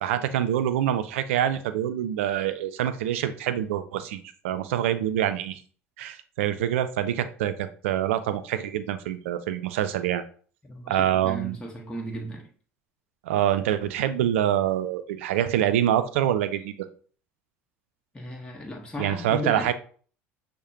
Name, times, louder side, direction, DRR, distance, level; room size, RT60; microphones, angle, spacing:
voice 1, 0.0-5.6 6.0-10.2 10.9-11.6 13.2-16.9 19.0-19.7, right 11 dB, 75° right, 0.4 m, -26 dB
voice 2, 10.6-12.5 18.1-19.7, equal, 15° left, 1.0 m, -36 dB
6.3 x 2.1 x 2.7 m
hypercardioid pair, 70°, 7 cm